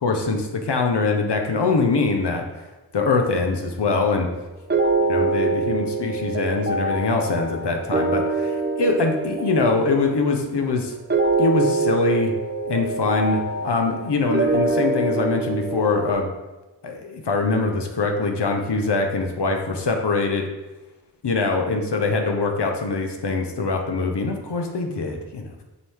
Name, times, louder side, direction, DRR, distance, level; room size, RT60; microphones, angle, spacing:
voice 1, 0.0-2.4 2.9-4.3 5.1-10.9 11.4-12.3 12.7-16.3 16.8-20.5 21.2-25.6, left 3 dB, 70° left, 3 dB, 1.1 m, -23 dB
sound 1, 4.7-16.1, right 3 dB, 25° right, 0.8 m, -24 dB
6.8 x 4.6 x 3.6 m, 1.1 s
wide cardioid pair, 65°, 43 cm